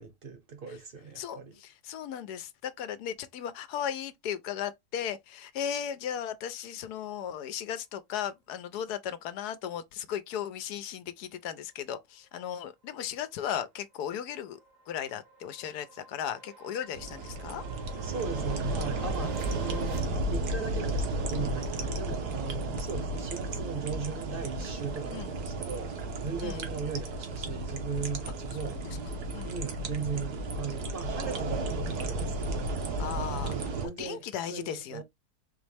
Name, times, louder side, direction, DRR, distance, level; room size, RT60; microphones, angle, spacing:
voice 1, 0.0-1.6 18.0-25.9 26.2-28.8 29.5-32.7 33.5-34.2 34.5-35.0, right 5 dB, 40° right, 0.9 m, -38 dB
voice 2, 1.2-14.6 14.9-17.6 25.1-25.3 26.4-26.7 28.6-29.0 29.3-29.6 33.0-35.0, left 9 dB, 75° left, 1.2 m, -36 dB
sound 1, 13.4-20.0, right 3 dB, 60° right, 1.2 m, -48 dB
sound 2, 16.9-33.9, right 2 dB, 75° right, 1.5 m, -33 dB
4.2 x 3.1 x 3.3 m
omnidirectional pair, 1.7 m